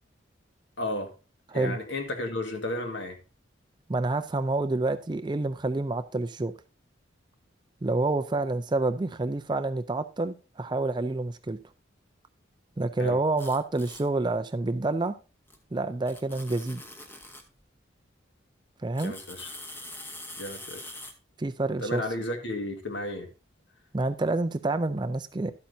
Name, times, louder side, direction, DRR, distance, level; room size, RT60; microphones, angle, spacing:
voice 1, 0.8-1.1 1.5-3.2 13.0-13.2 18.9-19.5 20.4-21.0 21.8-23.3, left 1 dB, 65° left, 1.8 m, -33 dB
voice 2, 3.9-6.5 7.8-11.6 12.8-15.2 15.7-16.8 18.8-19.1 21.4-22.0 23.9-25.5, right 2 dB, 20° right, 0.4 m, -28 dB
sound 1, 13.4-14.0 15.5-15.6 16.1-17.5 18.9-21.1, left 1 dB, 10° left, 0.9 m, -43 dB
12.0 x 8.7 x 2.7 m
head